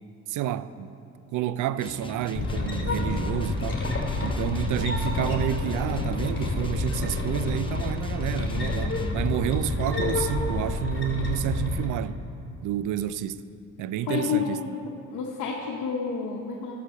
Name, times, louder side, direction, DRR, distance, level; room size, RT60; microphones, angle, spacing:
voice 1, 0.3-1.0 1.3-3.8 4.2-12.2 12.6-13.4 13.8-14.8, right 11 dB, 80° right, 0.5 m, -29 dB
sound 1, 1.8-9.2, left 3 dB, 15° left, 0.7 m, -40 dB
sound 2, 2.3-11.8, left 3 dB, 40° left, 2.6 m, -28 dB
voice 2, 14.1-16.8, left 6 dB, 85° left, 1.0 m, -30 dB
12.0 x 6.8 x 6.7 m
cardioid pair, 90°, 30 cm